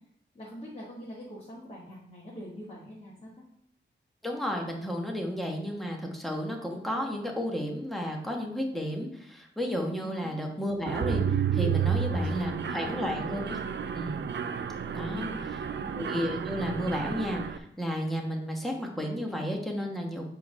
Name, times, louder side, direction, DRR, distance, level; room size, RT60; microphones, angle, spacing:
voice 1, 0.3-3.5 9.9-10.3 12.1-13.3 15.1-15.9, equal, 30° left, -6 dB, 1.6 m, -45 dB
voice 2, 4.2-11.2 11.5-13.6 13.9-14.2 14.9-15.6 15.9-20.2, equal, ahead, 0 dB, 1.2 m, -32 dB
Mechanisms, 10.9-17.6, right 7 dB, 65° right, 0.5 m, -31 dB
7.6 x 3.6 x 5.3 m, 0.72 s
wide cardioid pair, 125°, 20 cm